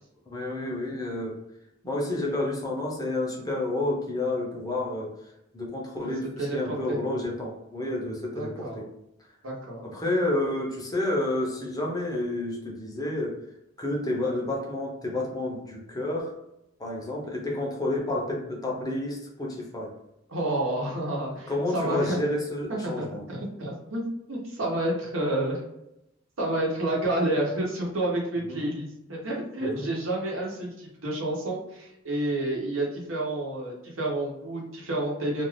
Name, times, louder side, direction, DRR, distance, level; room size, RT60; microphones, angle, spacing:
voice 1, 0.3-1.4 1.8-5.1 5.5-8.9 9.9-13.3 13.8-16.3 16.8-19.9 21.5-23.2 28.5-28.6 29.6-29.8, left 1 dB, 20° left, -2 dB, 0.6 m, -30 dB
voice 2, 6.4-7.0 8.3-8.8 9.4-9.8 20.3-22.2 22.7-24.0 24.3-25.6 26.4-35.4, right 1 dB, 80° right, -3 dB, 1.0 m, -29 dB
2.5 x 2.4 x 3.2 m, 0.84 s
head